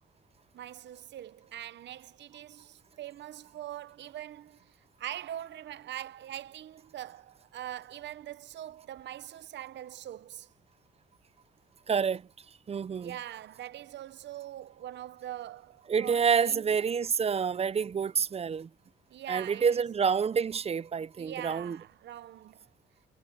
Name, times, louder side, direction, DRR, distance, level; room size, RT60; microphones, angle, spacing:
voice 1, 0.5-10.5 13.0-16.6 19.1-19.9 21.2-22.7, right 12 dB, 65° right, 0.7 m, -43 dB
voice 2, 11.9-12.2 12.7-13.2 15.9-18.7 19.3-21.8, right 6 dB, 30° right, 0.5 m, -28 dB
cardioid pair, 90°, 20 cm